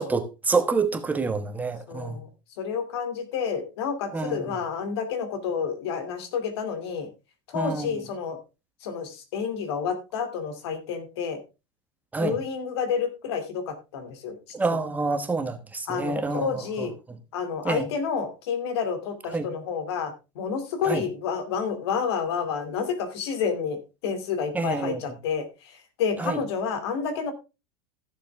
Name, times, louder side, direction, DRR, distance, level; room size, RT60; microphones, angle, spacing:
voice 1, 0.0-2.2 4.1-4.5 7.5-7.9 12.1-12.4 14.5-16.9 17.6-17.8 19.3-19.5 20.8-21.0 24.5-25.1 26.2-26.4, right 3 dB, 10° right, 1.2 m, -27 dB
voice 2, 1.9-2.3 2.6-7.1 7.5-8.4 8.8-11.4 12.2-14.4 15.9-16.9 17.3-27.3, left 6 dB, 80° left, 2.8 m, -29 dB
15.0 x 7.0 x 3.5 m
supercardioid pair, 135°, 14 cm